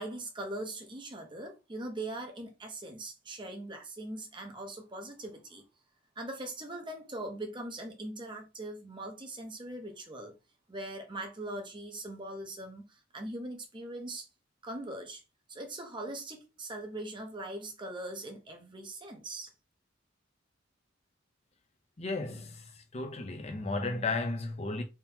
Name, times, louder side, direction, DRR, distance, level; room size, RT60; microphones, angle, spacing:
voice 1, 0.0-5.6 6.2-10.3 10.7-14.3 14.6-15.2 15.5-19.5, right 1 dB, 25° right, 0.8 m, -41 dB
voice 2, 22.0-22.6 22.9-24.8, left 3 dB, 35° left, 0.7 m, -34 dB
3.6 x 2.9 x 2.8 m
head